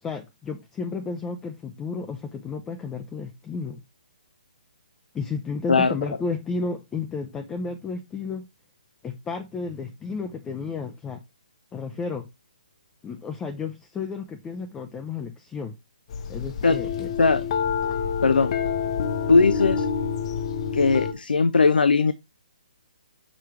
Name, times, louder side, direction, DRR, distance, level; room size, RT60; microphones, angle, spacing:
voice 1, 0.0-3.8 5.1-8.5 9.0-11.2 11.7-12.3 13.0-15.8 16.3-17.1, left 4 dB, 10° left, 0.5 m, -32 dB
sound 1, 16.1-21.1, left 6 dB, 40° left, 0.7 m, -27 dB
voice 2, 18.2-18.6 19.3-19.9 20.7-22.1, left 4 dB, 90° left, 0.5 m, -19 dB
6.1 x 3.4 x 4.6 m
hypercardioid pair, 150°, 5 cm